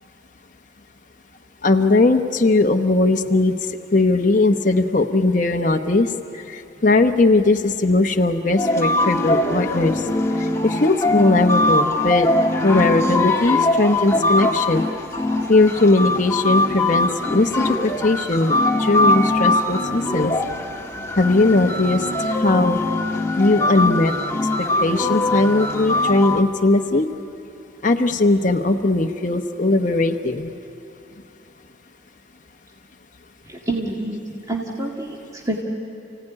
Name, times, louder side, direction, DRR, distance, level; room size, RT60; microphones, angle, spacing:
voice 1, 1.6-3.6 3.9-10.0 10.4-12.3 12.6-14.8 15.5-20.3 21.2-22.8 23.4-24.1 24.8-27.1 27.8-30.6, left 2 dB, 45° left, 4 dB, 1.0 m, -19 dB
sound 1, 8.6-26.4, left 2 dB, 15° left, 1.5 m, -22 dB
voice 2, 33.5-34.2 34.5-35.6, right 2 dB, 20° right, -2 dB, 2.0 m, -27 dB
30.0 x 17.0 x 9.8 m, 2.7 s
head